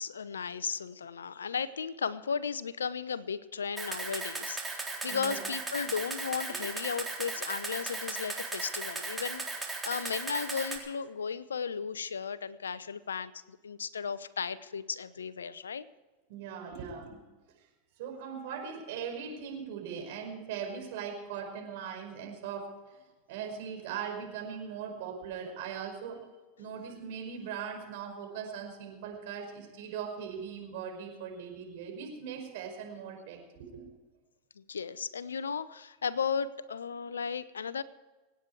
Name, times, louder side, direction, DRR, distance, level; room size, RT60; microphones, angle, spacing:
voice 1, 0.0-15.9 34.6-37.8, left 6 dB, 85° left, 17 dB, 0.8 m, -35 dB
Camera, 3.8-10.8, right 3 dB, 10° right, 3.8 m, -37 dB
voice 2, 5.1-5.5 6.5-6.6 16.3-17.2 18.0-23.0 23.3-26.2 26.6-33.9, right 7 dB, 65° right, 2 dB, 5.3 m, -40 dB
26.0 x 9.3 x 4.8 m, 1.2 s
hypercardioid pair, 95°, 0 cm